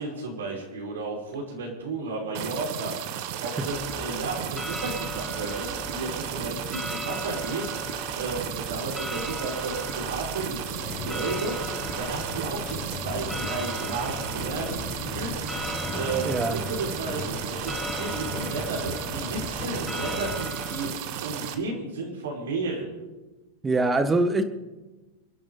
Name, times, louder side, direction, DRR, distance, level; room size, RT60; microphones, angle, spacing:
voice 1, 0.0-22.9, right 3 dB, 85° right, 5.3 m, -33 dB
sound 1, 2.3-21.5, right 10 dB, 55° right, 1.5 m, -34 dB
sound 2, 3.6-20.9, left 1 dB, 5° left, 1.6 m, -38 dB
sound 3, 10.7-20.4, left 5 dB, 40° left, 4.0 m, -38 dB
voice 2, 16.2-16.6 23.6-24.4, right 2 dB, 15° right, 1.5 m, -23 dB
29.5 x 10.5 x 4.0 m
hypercardioid pair, 110°, 0 cm